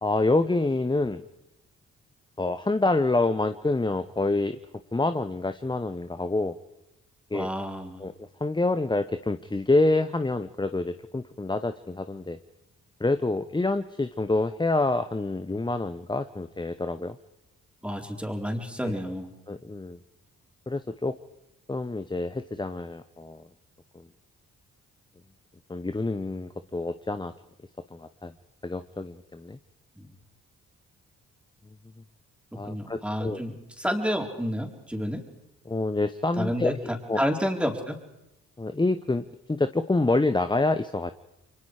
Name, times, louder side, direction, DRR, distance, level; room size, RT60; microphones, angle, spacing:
voice 1, 0.0-1.2 2.4-4.6 4.9-6.6 7.3-7.5 8.0-12.4 13.0-17.2 18.8-18.9 19.5-20.0 20.7-21.2 21.7-23.5 23.9-24.1 25.7-27.3 27.9-28.3 28.6-29.6 32.5-33.4 35.7-36.8 37.1-37.2 38.6-41.1, left 2 dB, 15° left, 10 dB, 0.9 m, -27 dB
voice 2, 7.3-8.0 17.8-19.3 30.0-30.1 32.6-35.2 36.4-38.0, equal, 5° right, 2 dB, 4.3 m, -30 dB
29.5 x 23.5 x 4.9 m, 0.89 s
supercardioid pair, 55°, 33 cm